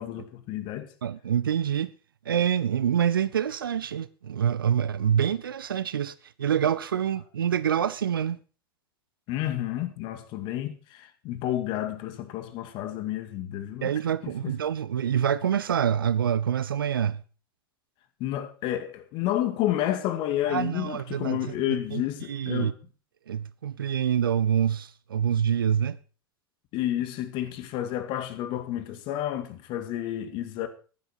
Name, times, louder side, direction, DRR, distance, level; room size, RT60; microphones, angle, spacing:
voice 1, 0.0-0.9 9.3-13.9 14.4-14.5 18.2-22.7 26.7-30.7, left 13 dB, 40° left, 2.1 m, -30 dB
voice 2, 1.0-1.9 2.3-8.4 13.8-17.2 20.5-21.4 21.7-22.0 22.3-22.7 23.3-26.0, right 9 dB, 70° right, 0.6 m, -26 dB
15.0 x 11.5 x 4.5 m
figure-of-eight pair, 85°, 12 cm